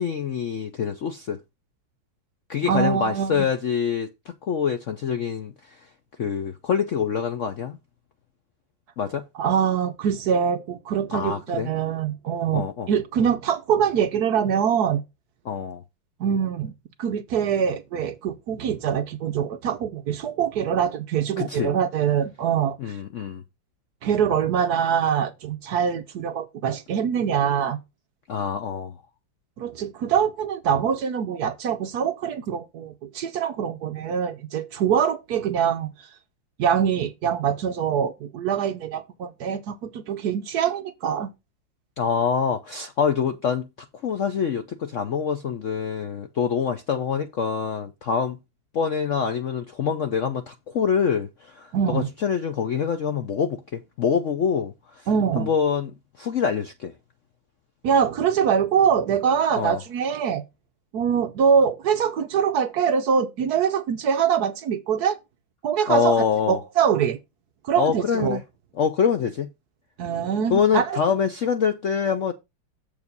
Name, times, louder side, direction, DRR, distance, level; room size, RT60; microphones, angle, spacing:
voice 1, 0.0-1.4 2.5-4.1 4.4-5.8 6.2-7.8 9.0-9.2 11.1-11.7 12.5-12.9 15.4-15.8 21.4-21.7 22.8-23.4 28.3-28.9 42.0-43.7 44.0-48.4 48.7-55.1 55.4-55.9 56.2-56.9 59.6-59.8 65.9-66.6 67.8-68.4 68.8-69.5 70.5-72.3, left 7 dB, 65° left, 0.7 m, -25 dB
voice 2, 2.7-3.5 9.3-15.0 16.2-16.7 17.0-22.8 24.0-27.8 29.6-36.1 36.6-41.3 51.7-52.1 55.1-55.5 57.8-60.4 60.9-65.2 65.6-67.2 67.6-68.4 70.0-71.0, right 7 dB, 65° right, 1.0 m, -24 dB
7.3 x 4.8 x 5.3 m
omnidirectional pair, 2.1 m